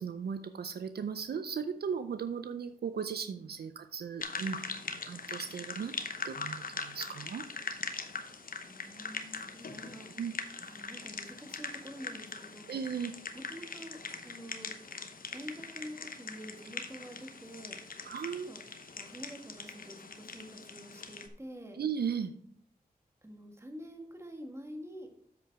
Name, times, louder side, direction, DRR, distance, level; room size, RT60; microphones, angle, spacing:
voice 1, 0.0-5.9 6.2-7.4 10.2-10.3 12.7-13.1 18.1-18.5 21.7-22.3, right 6 dB, 75° right, 10 dB, 0.5 m, -37 dB
sound 1, 4.2-21.3, left 4 dB, 60° left, 0.9 m, -42 dB
voice 2, 8.7-10.1 10.6-12.8 13.5-14.7 15.3-17.8 18.5-18.6 19.0-21.8 23.2-25.1, equal, 15° right, 3 dB, 1.8 m, -47 dB
7.9 x 5.2 x 4.7 m, 0.65 s
cardioid pair, 50°, 16 cm